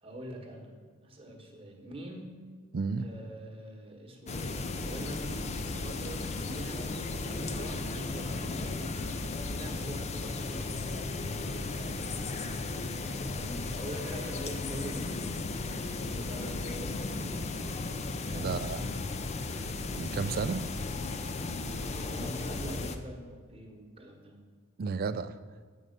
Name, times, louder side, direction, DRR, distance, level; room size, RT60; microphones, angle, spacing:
voice 1, 0.0-0.7 1.0-2.3 3.0-7.0 7.2-12.9 13.3-17.5 18.2-18.9 21.3-24.4, right 1 dB, 25° right, 1 dB, 1.2 m, -45 dB
voice 2, 2.7-3.1 18.4-18.9 20.0-20.7 24.8-25.4, right 4 dB, 45° right, 13 dB, 0.3 m, -32 dB
sound 1, 4.3-23.0, left 3 dB, 30° left, 0.4 m, -35 dB
7.6 x 5.4 x 6.5 m, 1.5 s
head